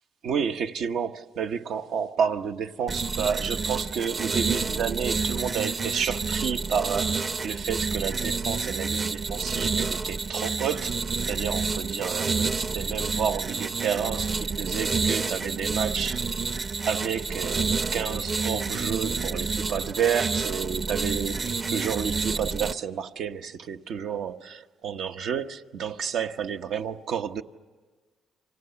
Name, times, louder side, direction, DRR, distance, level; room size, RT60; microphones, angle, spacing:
voice 1, 0.2-16.2 16.8-27.4, right 7 dB, 75° right, 1.0 m, -30 dB
sound 1, 2.9-22.7, right 4 dB, 45° right, 0.9 m, -29 dB
30.0 x 26.0 x 7.0 m
cardioid pair, 90°, 0 cm